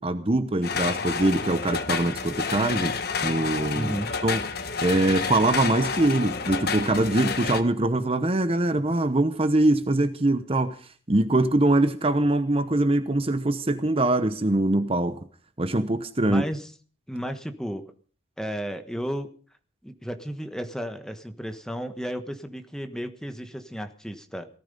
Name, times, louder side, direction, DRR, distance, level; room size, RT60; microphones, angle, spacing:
voice 1, 0.0-2.9 3.2-4.0 4.2-4.4 4.8-10.8 11.1-15.2 15.6-16.4, right 2 dB, 30° right, 10 dB, 0.9 m, -23 dB
sound 1, 0.6-7.6, left 5 dB, 50° left, 1.4 m, -29 dB
voice 2, 3.7-4.1 16.2-16.7 17.1-17.8 18.4-19.3 19.8-24.5, equal, 5° left, 8 dB, 1.3 m, -33 dB
18.5 x 14.0 x 5.4 m, 0.42 s
head